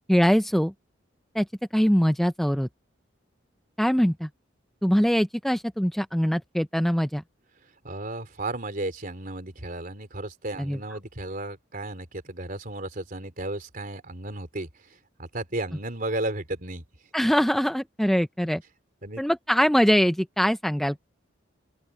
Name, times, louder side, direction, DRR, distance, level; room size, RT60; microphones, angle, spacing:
voice 1, 0.1-0.7 1.3-1.5 1.7-2.7 3.8-4.3 4.8-7.2 10.6-10.8 17.1-18.6 19.2-21.0, equal, ahead, 0.4 m, -22 dB
voice 2, 7.8-14.7 15.2-16.8 19.0-19.2, right 2 dB, 45° right, 3.5 m, -34 dB
open air
head